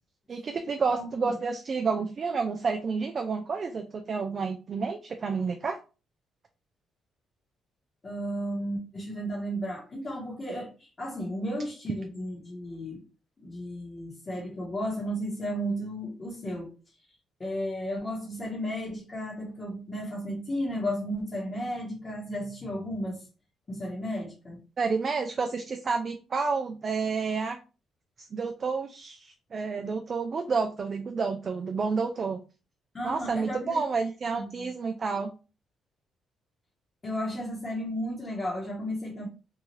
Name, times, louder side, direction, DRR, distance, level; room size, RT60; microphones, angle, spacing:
voice 1, 0.3-5.8 24.8-27.6 28.2-32.4 33.0-35.3, right 4 dB, 45° right, 0.4 m, -30 dB
voice 2, 0.9-1.3 8.0-13.0 13.4-16.7 17.4-23.2 23.7-24.6 32.9-34.7 37.0-39.3, equal, 30° left, 1.0 m, -34 dB
2.7 x 2.3 x 3.0 m
cardioid pair, 90°, 0 cm